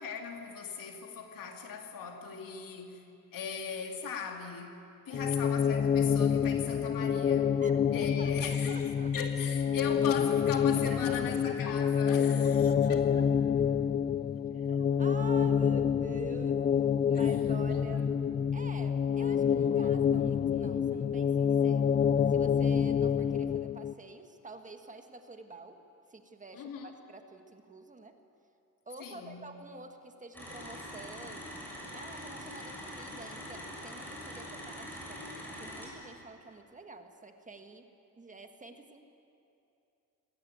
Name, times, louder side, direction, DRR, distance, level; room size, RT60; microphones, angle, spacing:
voice 1, 0.0-3.1 3.3-4.8 5.1-7.6 7.9-12.3 12.9-13.1 17.1-17.3 17.9-18.0 26.5-26.9 29.0-29.5, left 6 dB, 70° left, 2.6 m, -39 dB
sound 1, 5.1-23.9, left 7 dB, 30° left, 0.4 m, -27 dB
voice 2, 7.6-9.1 10.7-11.6 12.1-13.2 14.5-16.7 17.1-18.1 18.5-21.9 22.3-25.8 26.1-28.2 28.8-35.3 35.5-39.1, right 3 dB, 20° right, 1.5 m, -48 dB
sound 2, 30.3-35.9, equal, 5° left, 7.3 m, -43 dB
21.0 x 17.5 x 9.3 m
cardioid pair, 120°, 35 cm